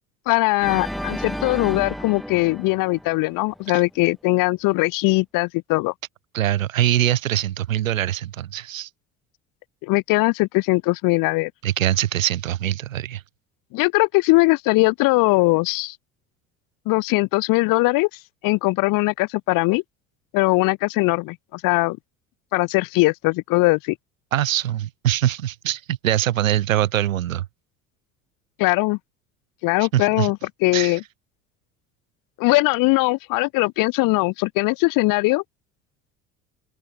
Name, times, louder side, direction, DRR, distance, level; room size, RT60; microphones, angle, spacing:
voice 1, 0.3-5.9 9.8-11.5 13.7-16.0 16.9-18.1 18.4-19.8 20.3-22.0 22.5-24.0 28.6-29.0 29.6-31.0 32.4-35.4, left 24 dB, 55° left, 0.7 m, -20 dB
Organ, 0.6-3.7, equal, ahead, 5.9 m, -32 dB
voice 2, 6.3-8.9 11.6-13.2 24.3-27.5 29.8-30.3 30.7-31.0, right 12 dB, 85° right, 1.1 m, -23 dB
open air
hypercardioid pair, 65°, 39 cm